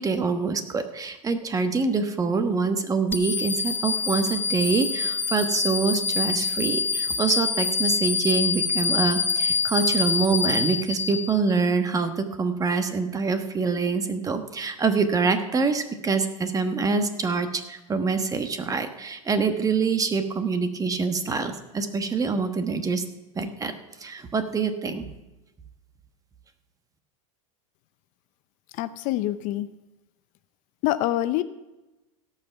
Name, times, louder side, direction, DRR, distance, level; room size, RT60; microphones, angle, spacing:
voice 1, 0.0-23.0 23.4-23.7 24.0-25.0, right 4 dB, 20° right, 8 dB, 1.2 m, -25 dB
sound 1, 3.1-11.6, left 5 dB, 10° left, 0.6 m, -26 dB
voice 2, 28.7-29.7 30.8-31.4, left 14 dB, 50° left, 14 dB, 0.6 m, -26 dB
17.0 x 5.9 x 5.8 m, 1.0 s
hypercardioid pair, 105°, 17 cm